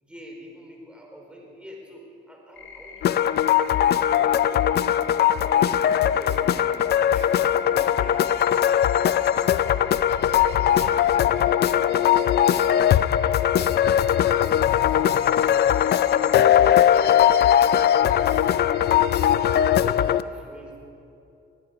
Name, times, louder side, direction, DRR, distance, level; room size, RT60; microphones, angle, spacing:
voice 1, 0.0-4.7 5.2-9.5 15.1-17.1 18.8-20.8, equal, 5° right, 0 dB, 4.0 m, -46 dB
sound 1, 2.5-19.2, left 4 dB, 70° left, 3.7 m, -43 dB
sound 2, 3.0-20.2, left 10 dB, 55° left, 0.4 m, -20 dB
21.0 x 11.5 x 5.0 m, 2.7 s
cardioid pair, 90°, 20 cm